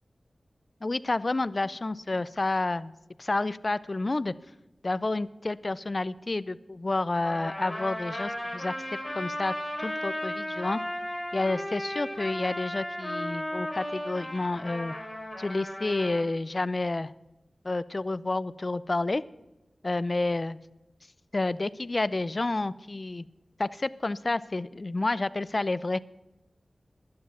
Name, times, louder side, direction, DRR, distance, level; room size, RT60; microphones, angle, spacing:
voice 1, 0.8-2.9 3.2-4.3 4.8-8.7 9.1-9.5 9.8-10.8 11.3-14.9 15.4-17.1 17.6-19.2 19.8-20.6 21.3-23.2 23.6-26.0, left 2 dB, 50° left, 17 dB, 0.5 m, -29 dB
Trumpet, 7.2-16.2, left 1 dB, 25° left, 5.9 m, -35 dB
12.0 x 9.5 x 7.0 m, 0.97 s
cardioid pair, 40°, 0 cm